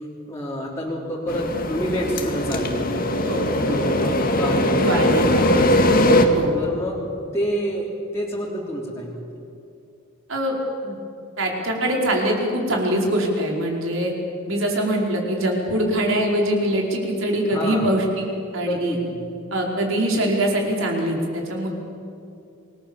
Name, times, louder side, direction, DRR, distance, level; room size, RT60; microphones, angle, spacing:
voice 1, 0.0-2.9 3.5-7.0 7.3-7.9 8.1-9.2 17.5-17.9 18.7-19.3, equal, 15° left, -5 dB, 3.6 m, -28 dB
sound 1, 1.3-6.3, left 1 dB, 45° left, 2.2 m, -20 dB
voice 2, 3.2-4.1 4.8-5.8 6.2-6.6 10.3-10.6 10.8-10.9 11.4-14.1 14.5-18.0 18.5-19.0 19.5-21.7, right 1 dB, 65° right, 0 dB, 5.0 m, -23 dB
28.0 x 21.0 x 7.2 m, 2.6 s
head